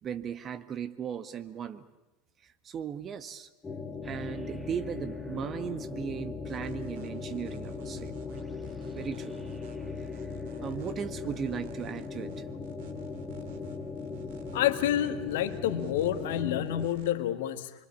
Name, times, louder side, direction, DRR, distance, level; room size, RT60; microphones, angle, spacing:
voice 1, 0.0-1.8 2.6-3.5 4.0-8.1 8.9-9.3 10.6-12.3, right 8 dB, 35° right, 11 dB, 1.6 m, -37 dB
sound 1, 3.6-16.9, left 4 dB, 20° left, 2.4 m, -39 dB
sound 2, 4.0-11.6, left 4 dB, 5° right, 4.5 m, -49 dB
sound 3, 6.5-17.1, right 7 dB, 65° right, 2.5 m, -51 dB
voice 2, 14.5-17.7, left 11 dB, 65° left, 10 dB, 1.7 m, -28 dB
25.0 x 24.5 x 8.6 m, 1.0 s
figure-of-eight pair, 80°, 0 cm